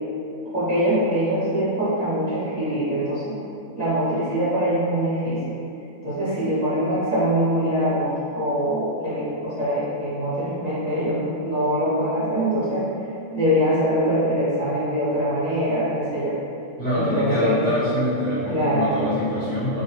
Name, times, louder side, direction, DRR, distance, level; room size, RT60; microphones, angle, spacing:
voice 1, 0.5-3.4 3.8-5.4 6.0-12.9 13.3-16.3 16.9-17.6 18.5-19.0, equal, 30° right, -13 dB, 1.2 m, -23 dB
voice 2, 16.8-19.8, equal, 10° left, -13 dB, 0.9 m, -25 dB
5.2 x 2.1 x 3.2 m, 2.7 s
omnidirectional pair, 1.4 m